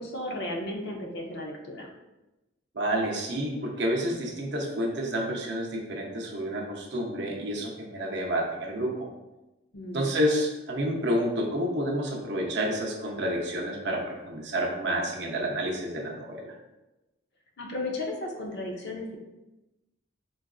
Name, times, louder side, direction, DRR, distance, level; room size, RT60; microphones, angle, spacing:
voice 1, 0.0-1.9 9.7-10.1 17.6-19.2, left 1 dB, 55° left, 1 dB, 0.5 m, -34 dB
voice 2, 2.7-9.1 9.9-16.5, equal, 60° right, -1 dB, 0.6 m, -29 dB
3.8 x 2.4 x 2.3 m, 1.0 s
head